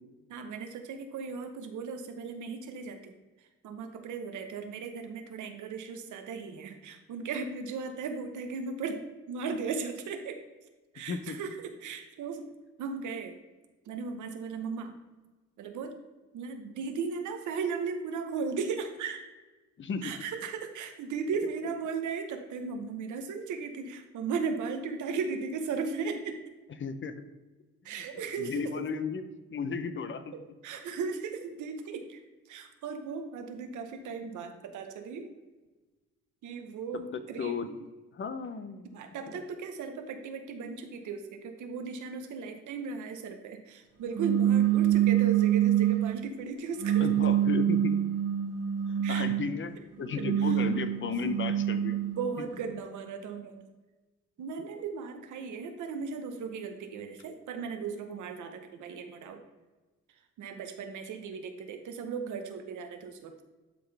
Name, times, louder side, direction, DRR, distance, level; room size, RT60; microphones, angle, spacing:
voice 1, 0.3-3.1 3.6-10.4 10.9-12.5 12.8-13.4 13.9-15.0 15.6-16.0 16.3-19.3 20.0-26.4 27.8-28.6 30.3-32.2 32.5-35.3 36.4-37.8 38.9-47.1 49.0-49.3 50.2-50.5 51.2-51.3 51.9-53.6 54.4-59.4 60.4-63.4, right 5 dB, 75° right, 6 dB, 1.0 m, -36 dB
voice 2, 19.8-20.1 26.8-27.2 27.9-28.0 28.4-29.3 29.5-30.3 36.9-37.7 38.1-39.0 39.3-39.4 47.0-48.0 48.9-52.0, left 5 dB, 40° left, 10 dB, 0.7 m, -34 dB
sound 1, 44.1-46.2 46.8-49.5 50.1-52.4, right 11 dB, 55° right, 0.8 m, -26 dB
11.5 x 3.9 x 3.4 m, 1.2 s
cardioid pair, 90°, 30 cm